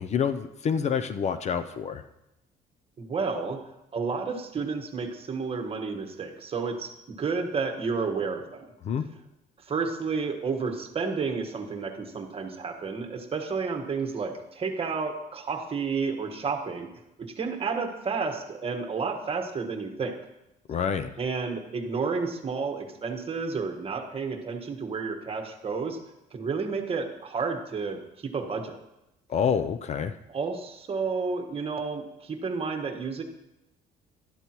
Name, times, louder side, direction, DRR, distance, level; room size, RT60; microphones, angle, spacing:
voice 1, 0.0-2.0 8.8-9.1 20.7-21.1 29.3-30.2, left 7 dB, 40° left, 10 dB, 0.5 m, -27 dB
voice 2, 3.0-3.6 3.9-8.6 9.7-16.9 17.2-20.2 21.2-26.0 26.3-28.8 30.3-33.2, right 5 dB, 35° right, 4 dB, 1.4 m, -31 dB
12.0 x 11.5 x 3.0 m, 0.90 s
cardioid pair, 110°, 17 cm